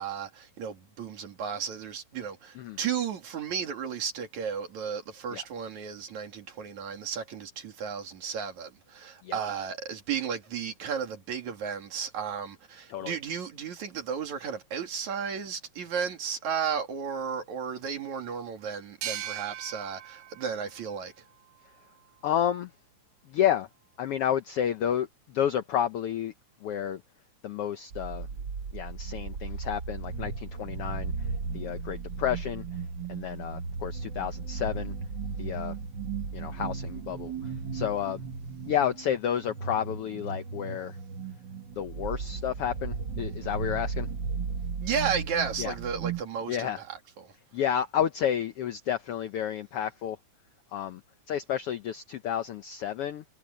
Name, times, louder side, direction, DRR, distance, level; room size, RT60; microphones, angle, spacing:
voice 1, 0.0-21.1 44.8-47.3, right 7 dB, 65° right, 3.7 m, -34 dB
sound 1, 19.0-22.4, right 11 dB, 85° right, 2.9 m, -41 dB
voice 2, 22.2-22.7 23.3-23.7 24.0-26.3 26.6-27.0 27.4-28.3 28.7-31.3 31.5-32.6 33.1-34.9 35.4-35.8 36.3-38.2 38.7-41.0 41.8-44.1 45.6-45.7 46.5-46.8 47.5-50.2 50.7-51.0 51.3-53.2, left 10 dB, 75° left, 1.3 m, -30 dB
sound 2, 27.9-46.2, right 5 dB, 45° right, 1.6 m, -36 dB
omnidirectional pair, 3.6 m